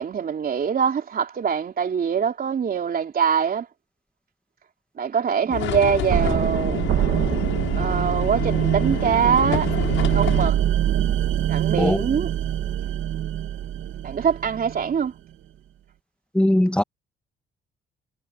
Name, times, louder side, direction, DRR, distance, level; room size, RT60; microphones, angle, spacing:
voice 1, 0.0-3.7 5.0-6.8 7.7-9.7 10.1-10.6 11.5-12.3 14.0-15.1, right 7 dB, 50° right, 3.5 m, -23 dB
sound 1, 5.5-10.5, left 13 dB, 85° left, 7.8 m, -29 dB
sound 2, 6.1-15.0, right 11 dB, 75° right, 2.5 m, -24 dB
voice 2, 16.3-16.8, left 1 dB, 5° left, 2.0 m, -19 dB
cardioid pair, 90°, 20 cm